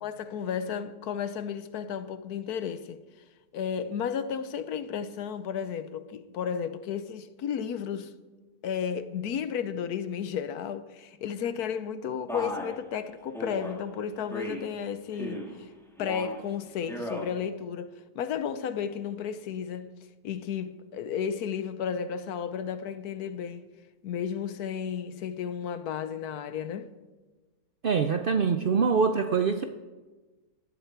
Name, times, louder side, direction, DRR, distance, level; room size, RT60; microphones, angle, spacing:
voice 1, 0.0-3.0 3.5-8.1 8.6-15.7 16.0-19.9 20.2-23.7 24.0-26.9, left 7 dB, 70° left, 1.2 m, -33 dB
Male speech man speaking, 12.3-12.8 13.3-13.7 14.3-14.7 15.1-15.6 16.0-16.4 16.8-17.3, equal, ahead, 2.1 m, -36 dB
voice 2, 27.8-29.6, right 5 dB, 70° right, 0.5 m, -24 dB
18.5 x 11.5 x 4.6 m
omnidirectional pair, 1.8 m